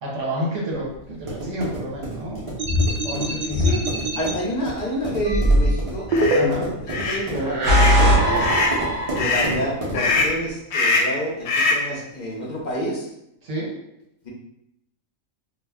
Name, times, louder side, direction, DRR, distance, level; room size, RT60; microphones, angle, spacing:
voice 1, 0.0-2.4 3.0-3.8 6.4-6.7 13.4-13.8, equal, 65° right, -4 dB, 1.2 m, -29 dB
sound 1, 0.8-10.5, right 1 dB, 40° right, 0.5 m, -32 dB
sound 2, 2.6-4.3 5.2-6.8 7.4-9.6, equal, 90° right, 0.4 m, -20 dB
voice 2, 4.1-8.6 9.1-13.1 14.2-14.3, equal, 45° left, -3 dB, 0.6 m, -29 dB
sound 3, 6.1-6.4 6.9-7.2 7.6-8.0 8.4-8.8 9.2-9.5 9.9-10.4 10.7-11.2 11.5-11.9, left 3 dB, 70° left, 0.9 m, -22 dB
2.4 x 2.1 x 3.4 m, 0.81 s
omnidirectional pair, 1.4 m